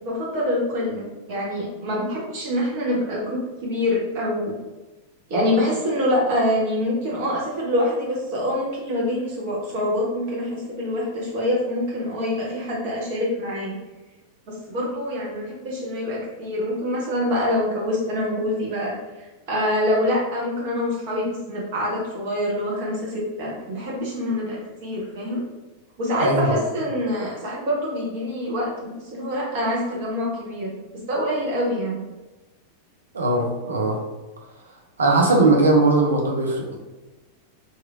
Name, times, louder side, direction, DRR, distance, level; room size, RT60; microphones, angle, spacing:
voice 1, 0.0-4.5 5.3-13.7 14.5-18.9 19.5-25.4 26.0-30.7 31.1-32.0, left 1 dB, 50° right, -4 dB, 1.1 m, -25 dB
voice 2, 26.2-26.6 33.1-34.0 35.0-36.8, right 2 dB, 70° right, 0 dB, 0.6 m, -19 dB
3.0 x 2.7 x 2.5 m, 1.1 s
figure-of-eight pair, 90°, 0 cm